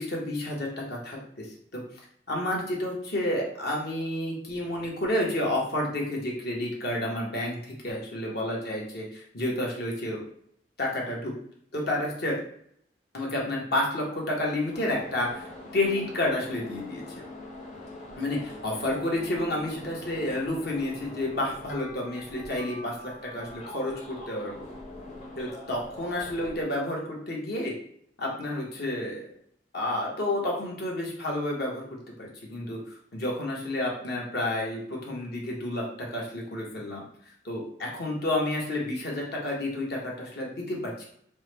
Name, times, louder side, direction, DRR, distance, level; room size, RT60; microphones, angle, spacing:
voice 1, 0.0-1.5 1.7-1.8 2.3-10.2 10.8-11.3 11.7-12.4 13.1-17.0 18.2-22.9 23.3-24.7 25.4-27.7 28.2-29.3 29.7-31.8 32.2-37.0 37.4-41.0, left 1 dB, 60° left, -2 dB, 1.1 m, -30 dB
sound 1, 14.7-26.6, left 2 dB, 40° left, 1.0 m, -43 dB
4.6 x 2.1 x 3.3 m, 0.68 s
head